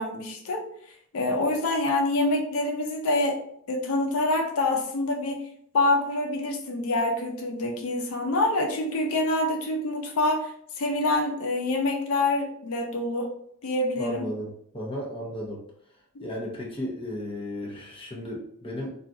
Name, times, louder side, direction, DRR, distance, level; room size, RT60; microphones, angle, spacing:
voice 1, 0.0-3.4 3.7-5.5 5.7-13.3 13.6-14.3 16.2-16.3, left 2 dB, 80° left, 2 dB, 0.5 m, -26 dB
voice 2, 14.0-15.6 16.2-18.9, equal, 25° left, -2 dB, 0.7 m, -34 dB
2.5 x 2.3 x 3.7 m, 0.67 s
head